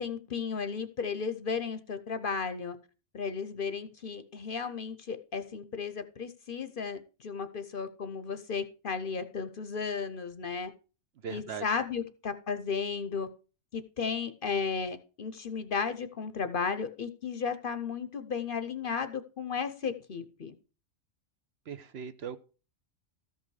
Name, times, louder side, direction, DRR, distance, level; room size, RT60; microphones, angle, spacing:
voice 1, 0.0-2.8 3.1-10.7 11.3-13.3 13.7-20.5, left 5 dB, 50° left, 10 dB, 0.8 m, -34 dB
voice 2, 11.2-11.6 21.7-22.4, right 7 dB, 60° right, 11 dB, 0.9 m, -39 dB
13.5 x 5.6 x 4.8 m, 0.35 s
omnidirectional pair, 1.3 m